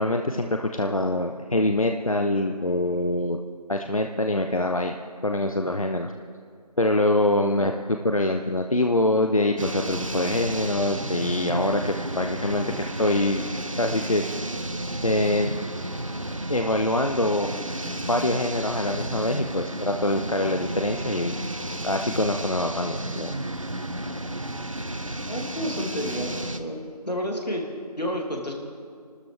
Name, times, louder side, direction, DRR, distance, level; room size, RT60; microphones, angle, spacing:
voice 1, 0.0-3.4 3.7-4.9 5.2-6.1 6.8-13.4 13.8-14.2 15.0-15.6 16.5-17.6 17.9-21.3 21.8-23.3, left 1 dB, 55° left, 4 dB, 0.7 m, -24 dB
sound 1, 9.6-26.6, right 1 dB, 50° right, 0.9 m, -32 dB
voice 2, 25.3-28.5, equal, 85° left, 0 dB, 2.9 m, -31 dB
27.5 x 13.0 x 3.6 m, 2.2 s
figure-of-eight pair, 175°, 21 cm